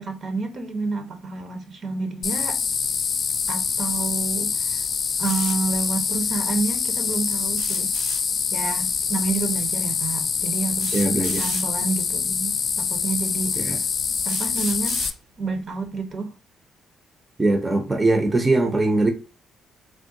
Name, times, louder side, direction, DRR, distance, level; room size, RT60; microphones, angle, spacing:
voice 1, 0.0-2.6 3.5-4.8 5.2-7.9 8.5-11.0 11.4-13.8 14.2-15.0 15.4-16.3, right 4 dB, 55° right, 0.8 m, -29 dB
sound 1, 2.2-15.1, left 6 dB, 50° left, 0.3 m, -25 dB
sound 2, 5.2-5.6 7.5-8.2 9.7-9.8 10.8-11.7 12.7-12.8 13.4-13.5 14.3-15.1, right 3 dB, 90° right, 1.4 m, -34 dB
voice 2, 10.9-11.4 13.6-13.8 17.4-19.1, right 2 dB, 20° right, 0.6 m, -21 dB
3.5 x 2.2 x 2.6 m
cardioid pair, 90°, 0 cm